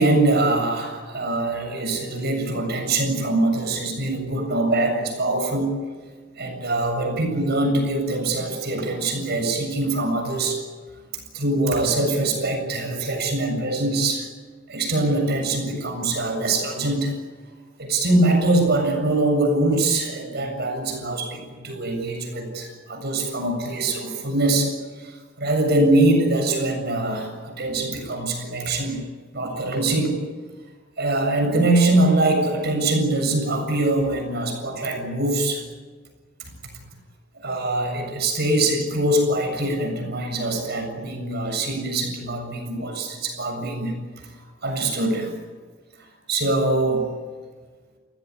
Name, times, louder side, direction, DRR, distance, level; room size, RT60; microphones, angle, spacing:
voice 1, 0.0-5.8 6.4-10.6 11.1-14.3 14.7-17.1 17.8-29.0 29.3-30.2 31.0-35.6 36.4-36.7 37.4-45.3 46.0-47.1, right 2 dB, 55° right, 4 dB, 7.5 m, -23 dB
29.0 x 16.5 x 9.9 m, 1.5 s
head